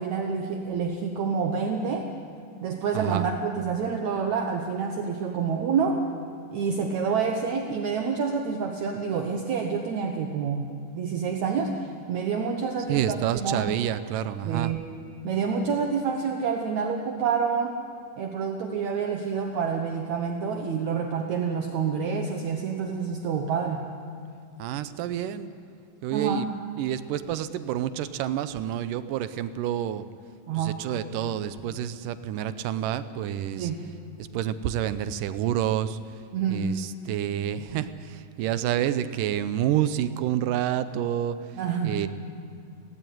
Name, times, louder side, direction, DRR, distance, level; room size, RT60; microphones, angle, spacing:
voice 1, 0.0-2.1 2.6-6.0 6.5-13.7 14.4-14.8 15.2-17.8 18.2-23.9 26.1-26.5 30.5-30.8 33.6-33.9 36.3-36.8 41.6-42.0, right 6 dB, 65° right, 3 dB, 2.1 m, -28 dB
voice 2, 2.9-3.3 12.9-14.7 24.6-25.5 26.0-26.5 26.8-30.1 30.5-33.7 34.2-36.0 36.5-41.4 41.8-42.1, right 11 dB, 80° right, 13 dB, 2.3 m, -28 dB
17.5 x 17.5 x 9.3 m, 2.3 s
omnidirectional pair, 4.0 m